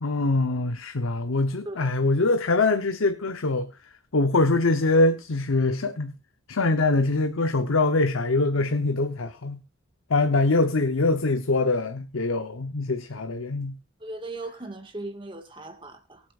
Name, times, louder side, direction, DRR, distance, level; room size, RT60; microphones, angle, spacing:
voice 1, 0.0-3.7 4.1-6.1 6.5-9.6 10.1-13.7, left 2 dB, 85° left, 0.9 m, -23 dB
voice 2, 14.0-16.2, right 2 dB, 25° right, 1.8 m, -38 dB
23.5 x 8.3 x 2.5 m
head